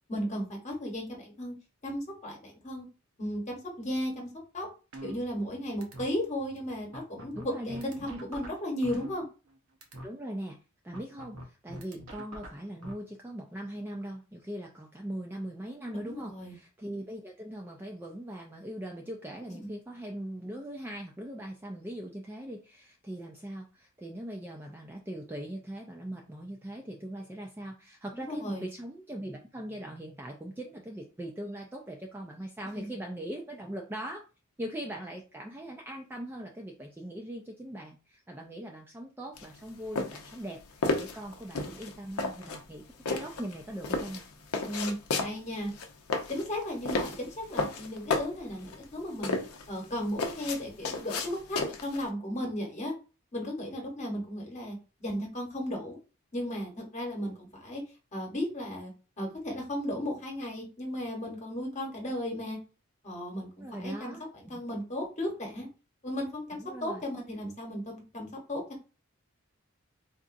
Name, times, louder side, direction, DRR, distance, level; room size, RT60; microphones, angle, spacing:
voice 1, 0.1-1.5 1.8-2.9 3.2-4.3 4.5-4.7 5.0-9.2 16.0-16.6 19.6-19.7 28.1-28.7 32.7-32.9 44.6-45.0 45.2-45.7 46.3-49.4 49.7-52.9 53.3-56.0 56.3-57.8 58.1-58.9 59.2-62.6 63.0-63.5 63.8-64.1 64.5-65.7 66.0-68.8, left 1 dB, 30° left, 0 dB, 1.0 m, -35 dB
sound 1, 4.9-5.5 5.8-6.1 6.6-6.7 6.9-9.5 9.8-10.1 10.9-12.9, right 1 dB, 75° right, 0.8 m, -44 dB
voice 2, 7.3-8.2 10.0-10.6 10.8-34.2 34.6-44.3 63.6-64.2 64.5-64.6 66.6-67.0, right 1 dB, 10° right, 0 dB, 0.3 m, -40 dB
sound 2, 39.4-52.1, left 3 dB, 80° left, 0.6 m, -33 dB
3.9 x 2.4 x 2.5 m, 0.32 s
head